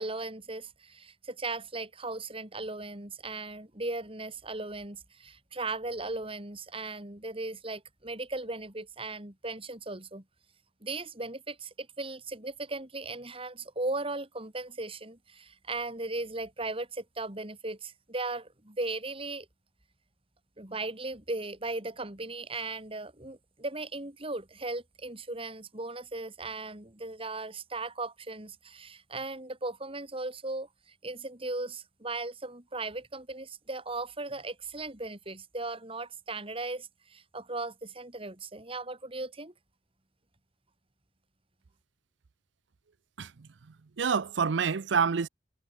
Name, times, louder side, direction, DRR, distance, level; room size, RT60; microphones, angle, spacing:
voice 1, 0.0-10.2 10.8-19.5 20.6-30.7 31.0-39.5, right 2 dB, 30° right, 3.5 m, -37 dB
voice 2, 43.2-43.5 44.0-45.3, right 6 dB, 80° right, 0.6 m, -27 dB
head